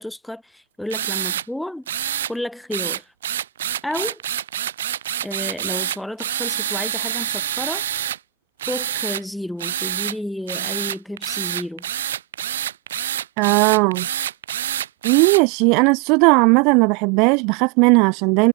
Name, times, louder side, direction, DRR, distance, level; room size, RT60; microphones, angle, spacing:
voice 1, 0.0-1.9 2.3-3.1 3.8-4.2 5.2-7.8 8.7-11.9, left 1 dB, 5° left, 4.9 m, -31 dB
sound 1, 0.9-1.5 1.9-2.3 2.7-8.2 8.6-9.2 9.6-10.2 10.5-15.4, right 10 dB, 60° right, 5.1 m, -27 dB
voice 2, 13.4-14.1 15.0-18.5, right 32 dB, 45° right, 2.0 m, -16 dB
figure-of-eight pair, 90°, 0 cm